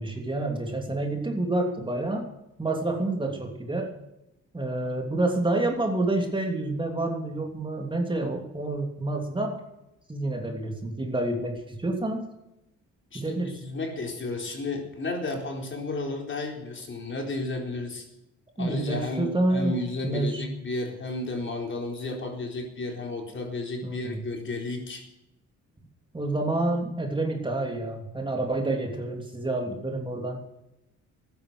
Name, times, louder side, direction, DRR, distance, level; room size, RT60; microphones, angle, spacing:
voice 1, 0.0-2.3 2.6-3.9 4.5-9.6 10.1-12.2 13.1-13.6 18.6-19.8 20.0-20.4 23.8-24.2 26.1-30.4, right 2 dB, 15° right, 2 dB, 3.0 m, -28 dB
voice 2, 13.1-18.0 18.6-25.1, left 2 dB, 40° left, 2 dB, 4.2 m, -33 dB
13.5 x 10.5 x 7.9 m, 0.88 s
cardioid pair, 90°, 30 cm